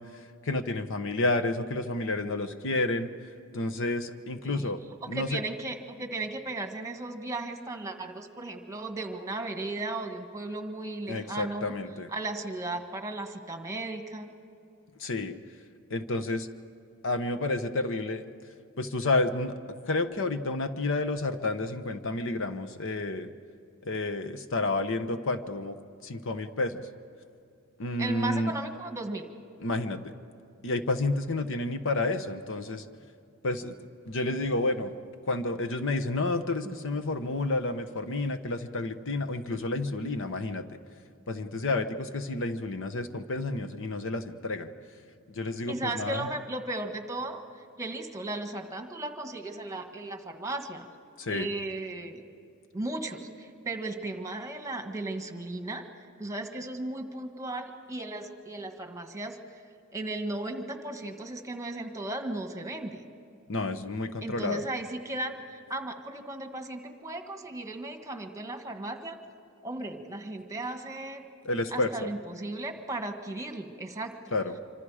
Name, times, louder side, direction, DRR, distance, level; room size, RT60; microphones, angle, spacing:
voice 1, 0.0-3.1 3.5-5.4 11.1-12.1 15.0-15.4 15.9-16.5 17.0-18.2 18.8-23.3 23.8-25.8 26.0-26.9 27.8-28.5 29.6-30.1 30.6-32.8 33.4-33.8 34.1-34.9 35.3-40.7 41.3-44.7 45.3-46.3 51.2-51.5 63.5-64.6 71.4-72.1 74.3-74.5, left 2 dB, 65° left, 9 dB, 1.0 m, -30 dB
voice 2, 5.0-11.7 12.1-14.3 28.0-29.3 36.6-37.0 45.7-47.4 47.8-50.9 51.3-52.3 52.7-55.8 56.2-59.4 59.9-63.0 64.2-69.2 69.6-71.2 71.7-74.2, right 2 dB, 15° right, 5 dB, 1.7 m, -36 dB
26.0 x 26.0 x 5.0 m, 2.5 s
head